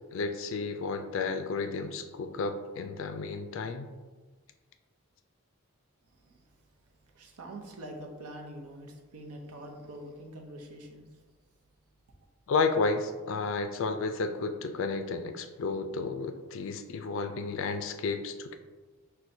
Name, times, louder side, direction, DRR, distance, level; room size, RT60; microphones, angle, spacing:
voice 1, 0.1-3.9 12.5-18.6, left 4 dB, 60° left, 7 dB, 0.3 m, -32 dB
voice 2, 7.1-11.0, right 1 dB, 90° right, 1 dB, 0.7 m, -44 dB
5.8 x 2.2 x 2.6 m, 1.3 s
head